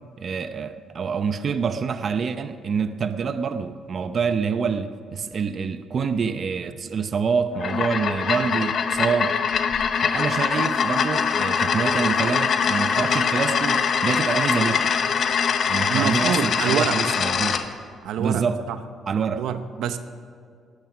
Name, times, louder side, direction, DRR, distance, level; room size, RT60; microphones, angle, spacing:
voice 1, 0.2-9.4 10.0-14.9 15.7-17.6 18.2-18.6 19.1-19.4, right 6 dB, 50° right, 11 dB, 0.7 m, -26 dB
sound 1, 7.5-17.6, left 6 dB, 60° left, 0.9 m, -23 dB
voice 2, 15.9-17.0 18.0-18.8 19.4-20.0, right 8 dB, 85° right, 10 dB, 0.7 m, -26 dB
18.0 x 8.9 x 6.1 m, 2.2 s
cardioid pair, 90°, 0 cm